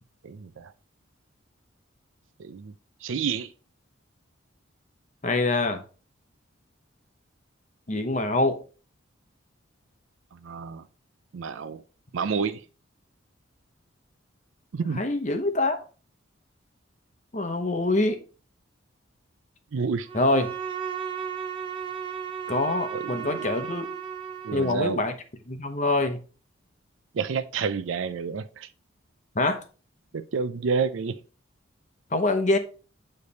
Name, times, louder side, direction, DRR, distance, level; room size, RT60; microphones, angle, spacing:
voice 1, 0.2-0.7 2.4-2.7 3.0-3.5 10.3-10.8 11.3-11.8 12.1-12.6 14.7-15.0 19.7-20.1 22.9-23.5 24.4-25.0 27.1-28.7 30.1-31.2, right 5 dB, 70° right, 0.4 m, -29 dB
voice 2, 5.2-5.8 7.9-8.6 14.9-15.8 17.3-18.2 20.1-20.5 22.5-23.9 24.5-25.1 25.5-26.2 29.3-29.6 32.1-32.6, left 2 dB, 35° left, 0.9 m, -25 dB
Bowed string instrument, 20.1-24.9, right 7 dB, 25° right, 0.6 m, -34 dB
8.7 x 3.3 x 4.1 m
head